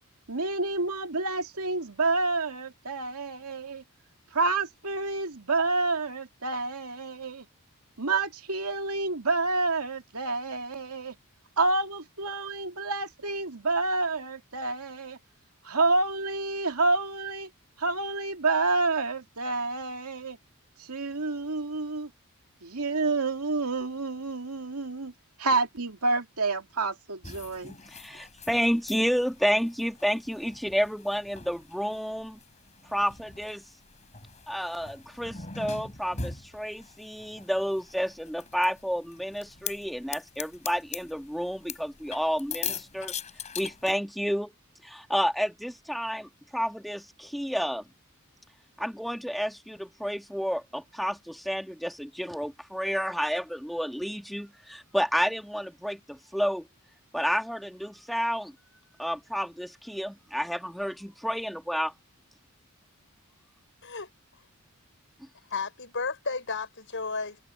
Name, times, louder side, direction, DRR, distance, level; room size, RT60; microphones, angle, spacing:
voice 1, 0.3-3.8 4.3-7.5 8.0-11.2 11.6-15.2 15.6-17.5 17.8-20.4 20.8-22.1 22.6-25.1 25.4-27.8, right 3 dB, 85° right, 2.4 m, -28 dB
sound 1, 27.2-43.9, left 6 dB, 30° left, 4.2 m, -42 dB
voice 2, 27.9-32.4 32.9-33.6 34.5-43.1 43.6-44.5 44.8-47.8 48.8-56.7 57.1-58.5 59.0-61.9, equal, ahead, 1.4 m, -30 dB
voice 3, 65.5-67.4, left 4 dB, 60° left, 5.6 m, -33 dB
head